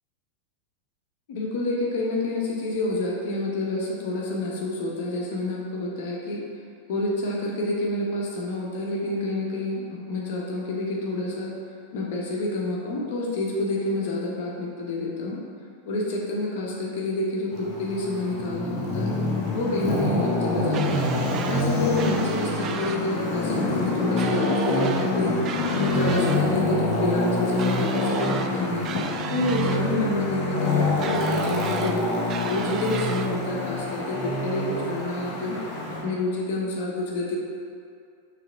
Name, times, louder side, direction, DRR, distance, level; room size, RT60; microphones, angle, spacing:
voice 1, 1.3-6.4 6.9-11.5 11.9-15.4 15.9-19.1 19.5-21.1 21.5-28.9 29.3-32.1 32.4-35.6 35.9-37.4, left 2 dB, 50° left, -3 dB, 1.2 m, -28 dB
Traffic noise roadway noise, 17.5-36.0, left 2 dB, 35° left, 1.3 m, -26 dB
sound 1, 20.7-21.7 22.0-23.0 24.2-25.1 25.4-26.4 27.6-28.5 28.8-29.8 31.0-32.0 32.3-33.3, right 7 dB, 30° right, 0.3 m, -35 dB
6.2 x 3.5 x 5.2 m, 2.4 s
figure-of-eight pair, 90°, 0 cm